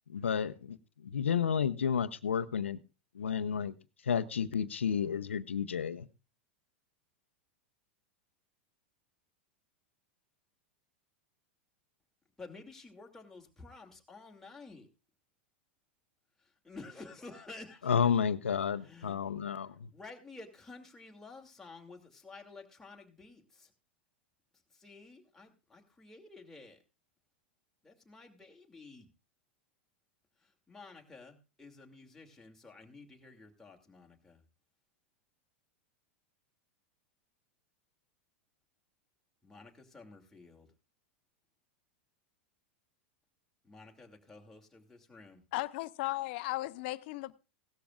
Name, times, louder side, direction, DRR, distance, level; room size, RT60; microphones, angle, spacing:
voice 1, 0.1-2.8 3.1-3.7 4.0-6.1 17.8-19.9, left 7 dB, 90° left, 0.8 m, -31 dB
voice 2, 12.4-14.9 16.6-17.9 18.8-19.2 19.7-23.7 24.7-26.8 27.8-29.1 30.4-34.4 39.4-40.7 43.6-45.4, left 3 dB, 5° left, 2.6 m, -52 dB
voice 3, 45.5-47.3, left 19 dB, 60° left, 0.7 m, -36 dB
17.0 x 13.0 x 2.5 m
hypercardioid pair, 100°, 6 cm